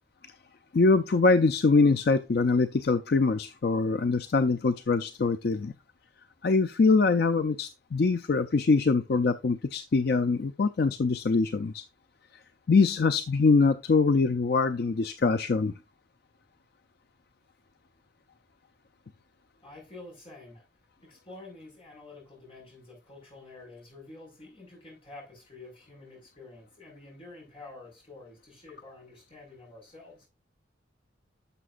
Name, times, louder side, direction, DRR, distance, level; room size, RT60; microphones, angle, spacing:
voice 1, 0.7-5.7 6.4-11.8 12.7-15.7, left 4 dB, 55° left, 0.4 m, -23 dB
voice 2, 19.6-20.6 21.0-30.3, left 2 dB, 30° left, 5.2 m, -49 dB
11.0 x 6.7 x 2.5 m
head